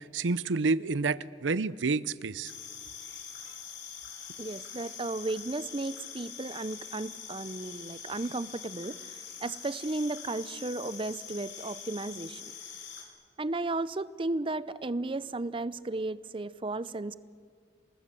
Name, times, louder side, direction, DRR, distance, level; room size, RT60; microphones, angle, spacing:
voice 1, 0.0-2.5, right 4 dB, 85° right, 18 dB, 0.6 m, -29 dB
sound 1, 2.4-13.0, left 7 dB, 75° left, 4.1 m, -44 dB
voice 2, 4.4-12.4 13.4-17.1, right 2 dB, 30° right, 17 dB, 0.6 m, -34 dB
28.5 x 19.5 x 7.7 m, 2.1 s
head